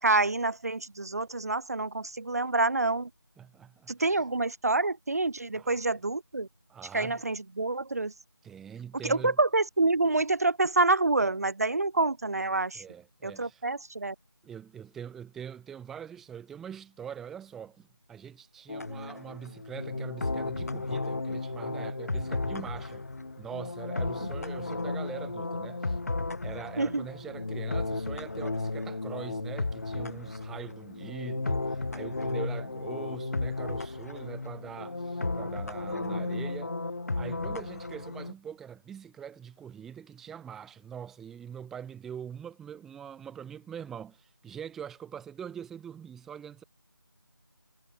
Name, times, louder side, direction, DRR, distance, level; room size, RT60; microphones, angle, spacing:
voice 1, 0.0-3.1 3.9-6.5 6.9-8.1 9.0-12.8 13.2-14.1 26.8-27.1, right 2 dB, 45° right, 4.3 m, -27 dB
voice 2, 3.4-4.2 5.5-5.8 6.7-7.2 8.4-9.4 12.7-13.6 14.4-23.0 23.4-26.0 26.4-36.8 37.1-46.6, right 8 dB, ahead, 2.5 m, -43 dB
sound 1, 18.7-38.3, left 3 dB, 45° left, 3.6 m, -34 dB
figure-of-eight pair, 170°, 12 cm